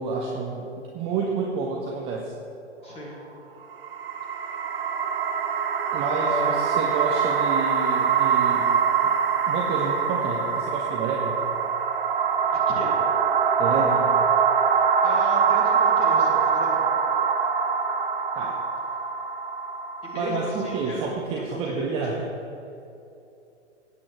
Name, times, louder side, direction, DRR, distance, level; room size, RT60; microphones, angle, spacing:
voice 1, 0.0-2.3 5.9-8.6 9.5-11.4 13.6-14.1 18.3-18.6 20.1-22.3, right 4 dB, 15° right, -1 dB, 0.7 m, -29 dB
voice 2, 2.8-3.2 6.0-7.0 12.7-13.0 15.0-16.8 20.0-22.0, left 1 dB, 15° left, -3 dB, 2.2 m, -35 dB
sound 1, 3.7-20.9, right 6 dB, 50° right, 0.9 m, -23 dB
17.0 x 8.4 x 3.1 m, 2.7 s
figure-of-eight pair, 115°, 35 cm